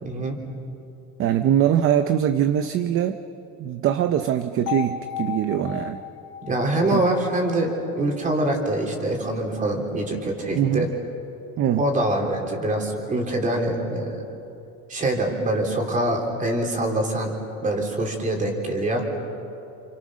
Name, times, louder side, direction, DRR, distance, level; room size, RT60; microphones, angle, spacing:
voice 1, 0.0-0.4 6.5-10.9 11.8-14.2 14.9-17.3 17.6-19.1, right 1 dB, 25° right, 2 dB, 3.6 m, -24 dB
voice 2, 1.2-3.2 3.6-6.0 6.9-7.0 10.5-10.9 11.6-11.8, right 10 dB, 40° right, 9 dB, 0.8 m, -22 dB
sound 1, 4.7-8.6, left 10 dB, 50° left, 2.8 m, -35 dB
29.0 x 29.0 x 6.3 m, 2.8 s
cardioid pair, 180°, 34 cm